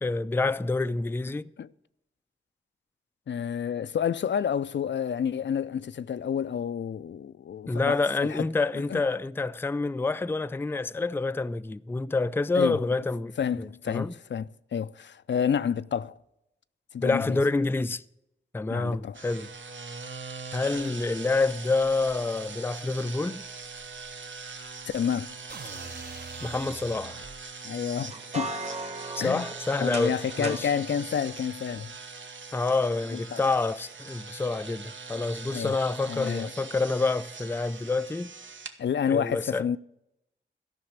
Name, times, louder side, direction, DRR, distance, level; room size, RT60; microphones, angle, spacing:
voice 1, 0.0-1.5 7.7-14.1 17.0-18.0 18.5-19.5 20.5-23.4 26.4-27.2 29.2-30.7 32.5-38.3 39.1-39.6, left 3 dB, 10° left, 0.3 m, -28 dB
voice 2, 3.3-8.5 8.7-9.1 12.6-12.8 13.4-16.2 16.9-17.4 18.7-19.2 24.9-25.3 27.6-28.5 29.2-29.5 29.8-32.0 33.1-33.4 35.5-35.8 36.1-36.5 38.8-39.8, left 8 dB, 70° left, 0.4 m, -29 dB
sound 1, 19.1-38.8, right 4 dB, 80° right, 1.1 m, -42 dB
sound 2, 25.5-27.4, right 4 dB, 55° right, 0.9 m, -43 dB
sound 3, 28.0-30.7, right 2 dB, 35° right, 1.3 m, -37 dB
13.0 x 6.0 x 8.7 m
wide cardioid pair, 90°, 20 cm